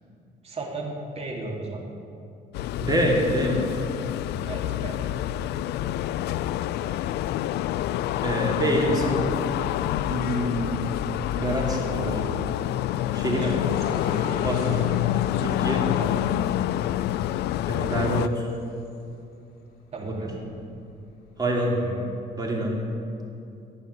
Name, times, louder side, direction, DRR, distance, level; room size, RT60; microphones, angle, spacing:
voice 1, 0.4-1.8 4.4-5.0 13.3-13.9 16.0-16.4 19.9-20.3 21.6-22.1, right 3 dB, 40° right, 0 dB, 2.5 m, -35 dB
sound 1, 2.5-18.3, left 13 dB, 90° left, 0.4 m, -27 dB
voice 2, 2.8-3.6 8.2-9.2 10.1-10.8 11.4-12.2 13.1-13.5 14.4-14.8 15.4-15.8 17.7-18.5 20.0-20.1 21.4-21.7 22.3-22.7, right 1 dB, 25° right, -2 dB, 2.7 m, -26 dB
sound 2, 10.2-19.3 19.8-21.5, left 4 dB, 65° left, 1.8 m, -41 dB
14.5 x 5.7 x 9.4 m, 2.6 s
cardioid pair, 130°, 17 cm